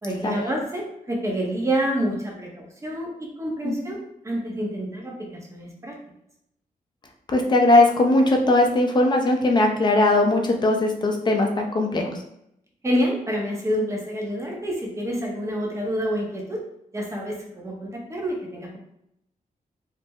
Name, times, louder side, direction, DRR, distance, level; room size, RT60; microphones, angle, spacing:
voice 1, 0.0-5.1 5.5-6.0 12.8-16.6 16.9-18.8, equal, 20° right, -1 dB, 0.6 m, -28 dB
voice 2, 7.3-12.1, left 2 dB, 30° left, 2 dB, 0.4 m, -19 dB
3.1 x 2.0 x 3.4 m, 0.77 s
wide cardioid pair, 175°, 15 cm